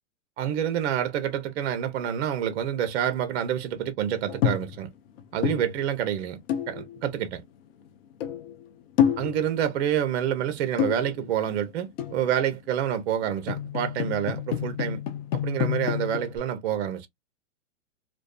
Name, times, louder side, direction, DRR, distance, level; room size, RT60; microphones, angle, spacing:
voice 1, 0.4-4.9 5.3-6.4 6.7-7.4 9.2-15.0 15.3-17.1, right 10 dB, 55° right, 0.7 m, -28 dB
sound 1, 4.3-4.9 5.2-6.1 6.5-7.2 7.8-7.9 8.1-8.7 9.0-9.7 10.7-11.6 12.0-12.5 13.2-16.4, left 9 dB, 50° left, 0.6 m, -29 dB
2.5 x 2.1 x 2.2 m
supercardioid pair, 155°, 37 cm